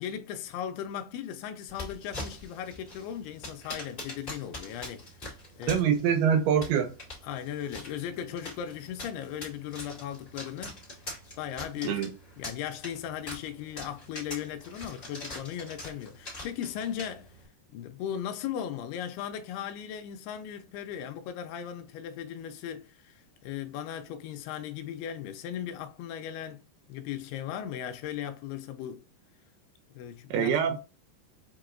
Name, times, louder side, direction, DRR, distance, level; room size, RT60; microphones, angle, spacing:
voice 1, 0.0-5.8 7.2-10.8 11.4-12.0 12.4-17.3 17.7-26.6 26.9-29.0 29.9-30.8, left 9 dB, 85° left, 2.3 m, -37 dB
sound 1, 1.7-17.4, left 1 dB, 35° left, 0.8 m, -44 dB
voice 2, 5.7-7.0 11.8-12.1 30.3-30.8, right 8 dB, 80° right, 2.3 m, -25 dB
7.4 x 2.9 x 2.5 m
omnidirectional pair, 5.2 m